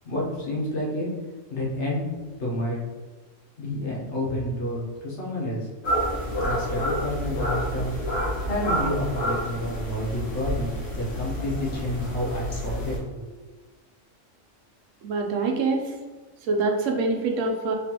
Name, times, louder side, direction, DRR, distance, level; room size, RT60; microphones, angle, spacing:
voice 1, 0.0-1.1 1.5-2.1 2.4-2.8 3.6-5.7 6.4-7.9 8.4-13.2, left 1 dB, 65° left, -5 dB, 1.3 m, -29 dB
sound 1, 5.8-13.0, equal, 85° left, 1.5 m, -29 dB
voice 2, 15.0-15.9 16.5-17.8, right 3 dB, 80° right, 2 dB, 1.0 m, -25 dB
3.7 x 3.3 x 2.9 m, 1.3 s
omnidirectional pair, 1.3 m